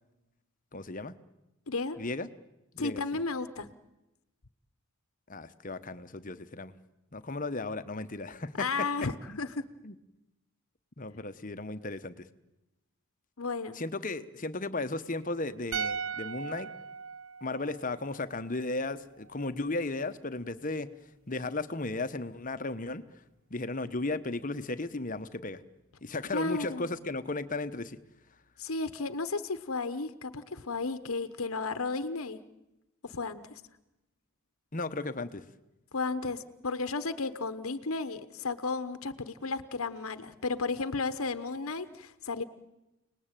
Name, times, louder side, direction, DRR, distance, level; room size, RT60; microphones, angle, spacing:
voice 1, 0.7-1.2 2.0-2.3 2.7-3.2 5.3-6.7 7.1-8.9 9.3-9.4 9.8-10.0 11.0-12.3 13.7-16.7 17.4-20.9 21.3-23.0 23.5-25.6 26.0-28.0 34.7-35.4, left 2 dB, 40° left, 11 dB, 1.1 m, -35 dB
voice 2, 1.7-2.0 2.8-3.7 8.6-9.6 13.4-13.8 26.3-26.9 28.6-32.4 33.0-33.6 35.9-42.4, left 3 dB, 80° left, 12 dB, 1.1 m, -33 dB
sound 1, 15.7-18.9 19.2-19.3, right 6 dB, 75° right, 0.8 m, -38 dB
30.0 x 19.5 x 9.1 m, 0.98 s
head